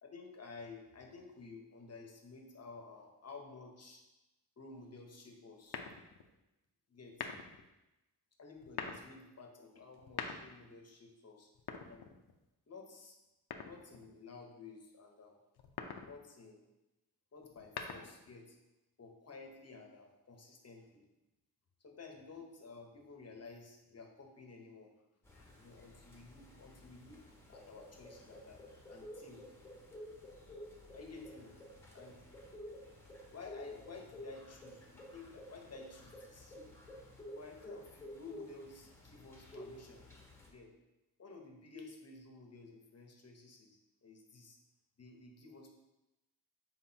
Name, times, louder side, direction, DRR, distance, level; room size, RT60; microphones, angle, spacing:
voice 1, 0.0-4.0 4.6-5.9 6.9-7.3 8.4-11.5 11.8-12.1 12.7-13.2 13.6-15.4 16.0-16.7 17.3-18.6 19.0-21.0 21.8-24.9 25.3-27.2 27.5-28.6 28.9-29.4 30.9-31.6 31.9-32.2 33.3-36.7 37.3-40.1 40.4-40.7 41.2-44.6 45.0-45.7, left 4 dB, 40° left, 2 dB, 1.0 m, -53 dB
sound 1, 5.7-6.3 7.1-7.6 8.6-9.1 9.9-10.7 11.5-12.5 13.5-14.1 15.6-16.1 17.4-18.3, left 6 dB, 75° left, 0.7 m, -44 dB
sound 2, 25.2-40.5, equal, 5° left, 1.2 m, -52 dB
7.7 x 4.7 x 2.8 m, 0.98 s
wide cardioid pair, 120°, 39 cm